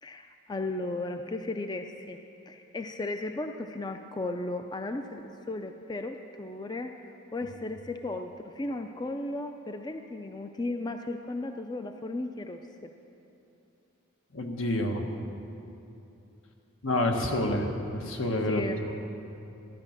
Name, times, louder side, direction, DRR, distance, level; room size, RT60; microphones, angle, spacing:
voice 1, 0.0-2.2 2.5-6.9 7.3-12.9 18.5-18.8, left 2 dB, 20° left, 6 dB, 0.4 m, -35 dB
voice 2, 14.3-15.1 16.8-18.9, left 1 dB, 75° left, 3 dB, 1.5 m, -28 dB
14.0 x 10.5 x 7.4 m, 2.8 s
head